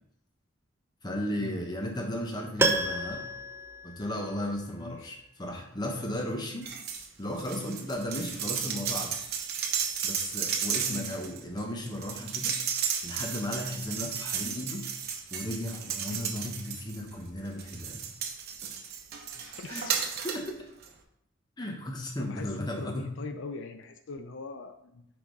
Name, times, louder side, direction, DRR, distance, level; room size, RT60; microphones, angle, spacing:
voice 1, 1.0-3.2 3.8-6.7 7.2-9.1 10.0-12.6 13.0-14.9 15.3-18.0 19.7-19.8 20.2-20.7 21.6-23.1, left 1 dB, 20° left, 1 dB, 1.0 m, -35 dB
Piano, 2.6-4.7 5.0-5.1, right 2 dB, 10° right, 0.4 m, -30 dB
voice 2, 4.8-5.1 10.8-11.2 16.1-16.3 19.3-20.1 22.2-25.1, left 3 dB, 75° left, 7 dB, 0.5 m, -41 dB
sound 1, 6.6-7.1 7.4-17.1 17.6-20.5 20.8-20.9, right 7 dB, 55° right, 0.8 m, -34 dB
5.9 x 4.9 x 3.9 m, 0.78 s
head